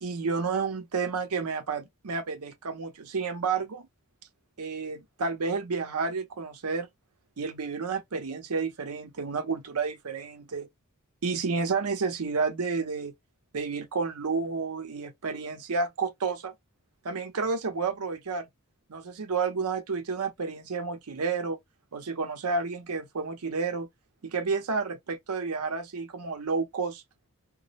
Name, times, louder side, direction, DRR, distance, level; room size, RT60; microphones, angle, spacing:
voice 1, 0.0-3.9 4.6-6.9 7.4-10.7 11.2-13.1 13.5-16.5 17.0-18.5 18.9-21.6 21.9-23.9 24.2-27.0, right 4 dB, 80° right, 0.7 m, -30 dB
2.2 x 2.0 x 2.8 m
head